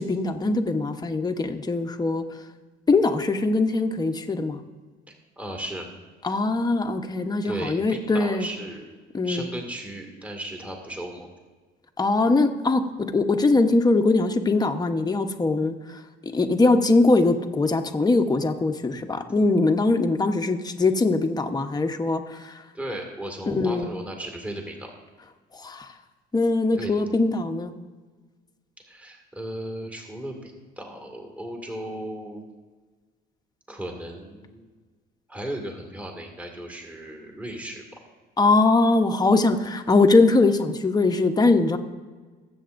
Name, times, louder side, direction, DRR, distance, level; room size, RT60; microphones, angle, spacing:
voice 1, 0.0-2.2 2.9-4.6 6.2-8.5 9.1-9.5 12.0-16.0 16.3-22.6 23.5-23.9 25.6-25.9 26.3-27.7 38.4-41.8, left 3 dB, 20° left, 5 dB, 1.1 m, -22 dB
voice 2, 5.4-5.9 7.4-8.9 9.2-11.3 22.7-24.9 26.7-26.9 28.8-32.4 33.7-34.7 35.3-37.8, right 1 dB, 5° right, 2 dB, 2.1 m, -35 dB
21.0 x 8.0 x 2.6 m, 1.4 s
supercardioid pair, 95°, 20 cm